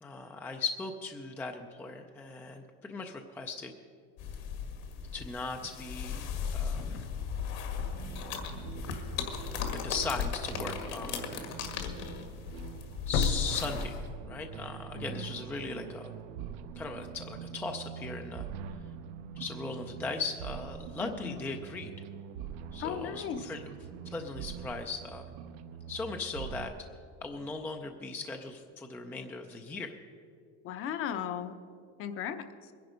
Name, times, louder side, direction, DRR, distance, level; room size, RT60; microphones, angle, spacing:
voice 1, 0.0-3.7 5.1-7.0 9.7-11.6 13.1-16.2 16.8-18.5 19.4-21.9 22.7-23.7 24.1-25.3 25.9-26.7 27.2-29.9, left 4 dB, 5° left, 4 dB, 0.4 m, -38 dB
sound 1, 4.2-13.9, left 7 dB, 70° left, 1.9 m, -37 dB
sound 2, 7.8-26.7, right 8 dB, 70° right, 0.7 m, -44 dB
sound 3, 9.8-10.0 10.5-10.6 13.1-14.6 14.9-15.0, left 5 dB, 55° left, 1.4 m, -32 dB
voice 2, 15.0-15.3 21.0-21.4 22.8-23.4 30.6-31.6 32.0-32.7, left 9 dB, 40° left, 9 dB, 0.7 m, -36 dB
21.5 x 10.5 x 5.1 m, 2.4 s
cardioid pair, 160°, 35 cm